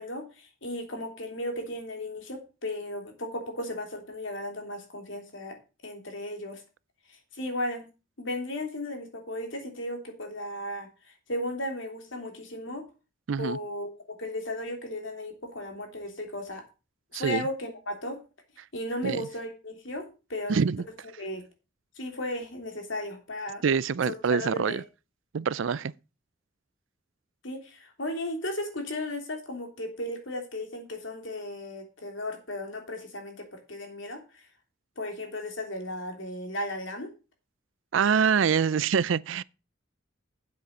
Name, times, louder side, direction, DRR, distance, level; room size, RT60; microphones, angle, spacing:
voice 1, 0.0-5.6 5.8-6.6 7.3-7.9 8.2-12.8 13.4-16.6 17.2-18.2 18.7-20.6 21.2-21.4 22.0-23.6 24.1-24.8 27.4-34.2 35.0-37.1, left 1 dB, 70° left, 3.2 m, -35 dB
voice 2, 13.3-13.6 17.1-17.4 19.0-19.2 20.5-20.8 23.6-24.8 25.3-25.9 37.9-39.4, right 6 dB, 75° right, 0.4 m, -25 dB
9.3 x 7.7 x 5.4 m
head